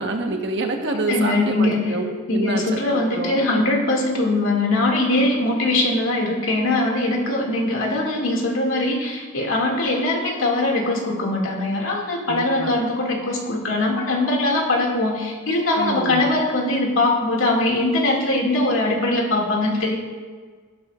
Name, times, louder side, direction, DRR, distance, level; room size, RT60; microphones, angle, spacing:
voice 1, 0.0-3.4 12.3-12.8 15.7-16.3, right 2 dB, 60° right, 3 dB, 1.3 m, -27 dB
voice 2, 1.0-1.9 2.3-20.0, left 2 dB, 75° left, -1 dB, 2.4 m, -21 dB
14.0 x 12.5 x 2.5 m, 1.5 s
head